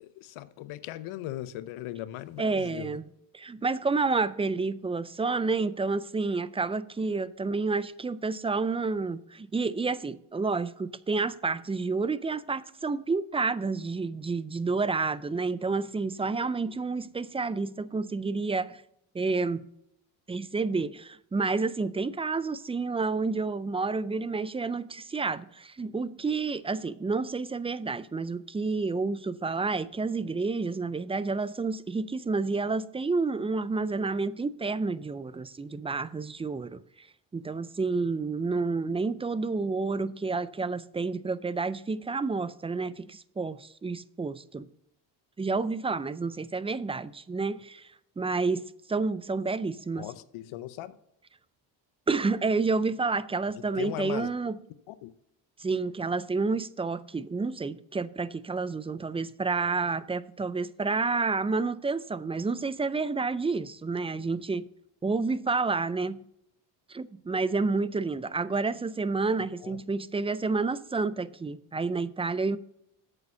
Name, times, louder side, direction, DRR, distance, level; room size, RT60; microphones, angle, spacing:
voice 1, 0.0-3.0 50.0-50.9 53.7-54.3 54.9-55.1 69.6-69.8, left 14 dB, 85° left, 0.8 m, -38 dB
voice 2, 2.4-3.1 3.3-18.8 19.1-19.7 20.3-37.1 37.3-44.7 45.4-47.9 48.2-48.6 48.9-50.1 52.1-54.6 55.6-64.7 65.0-66.2 66.9-72.6, right 4 dB, 15° right, 0.3 m, -29 dB
8.3 x 7.0 x 5.6 m
cardioid pair, 85°, 48 cm